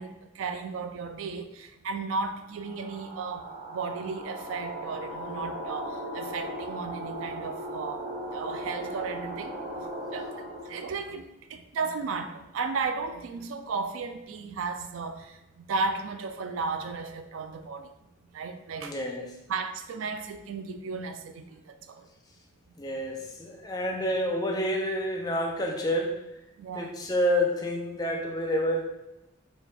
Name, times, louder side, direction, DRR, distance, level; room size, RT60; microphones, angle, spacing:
voice 1, 0.0-8.1 8.3-9.8 10.1-17.9 18.3-19.0 19.5-22.1 26.6-26.9, right 4 dB, 90° right, 9 dB, 0.4 m, -34 dB
sound 1, 2.5-10.9, right 1 dB, 45° right, 1.2 m, -38 dB
voice 2, 18.8-19.4 22.8-26.2 26.8-28.8, equal, 20° left, 0 dB, 0.5 m, -28 dB
4.2 x 2.3 x 3.4 m, 0.94 s
head